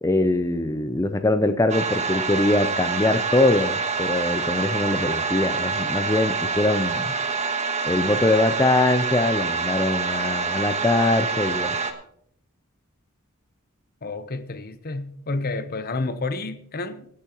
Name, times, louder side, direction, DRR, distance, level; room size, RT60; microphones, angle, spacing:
voice 1, 0.0-7.1 7.9-11.8, left 2 dB, 15° left, 0.5 m, -22 dB
sound 1, 1.7-11.9, right 4 dB, 30° right, 1.2 m, -26 dB
voice 2, 14.0-17.1, left 3 dB, 45° left, 0.9 m, -30 dB
25.0 x 8.4 x 3.0 m
head